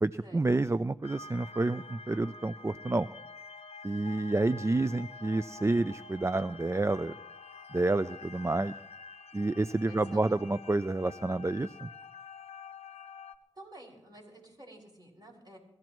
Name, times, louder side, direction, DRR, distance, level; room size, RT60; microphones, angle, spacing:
voice 1, 0.0-3.1 3.8-7.2 7.7-8.7 9.3-11.9, right 2 dB, 25° right, 14 dB, 0.4 m, -29 dB
sound 1, 1.0-13.4, left 4 dB, 75° left, 0.7 m, -48 dB
voice 2, 9.9-10.4 13.6-15.6, right 1 dB, 40° right, -1 dB, 5.9 m, -51 dB
23.5 x 14.5 x 3.1 m, 0.85 s
cardioid pair, 40°, 11 cm